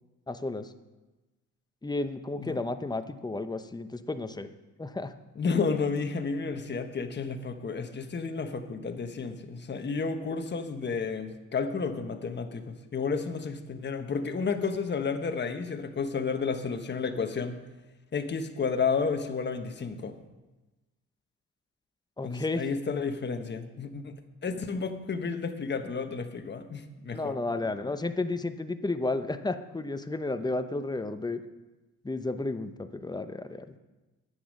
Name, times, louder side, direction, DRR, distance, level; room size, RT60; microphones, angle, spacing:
voice 1, 0.3-0.7 1.8-4.5 4.8-5.1 22.2-22.6 27.1-31.4 32.0-33.7, left 2 dB, 15° left, 9 dB, 0.8 m, -32 dB
voice 2, 5.4-17.6 18.1-20.1 22.2-27.3, left 5 dB, 35° left, 6 dB, 1.2 m, -31 dB
9.9 x 9.2 x 6.5 m, 1.1 s
cardioid pair, 90°, 30 cm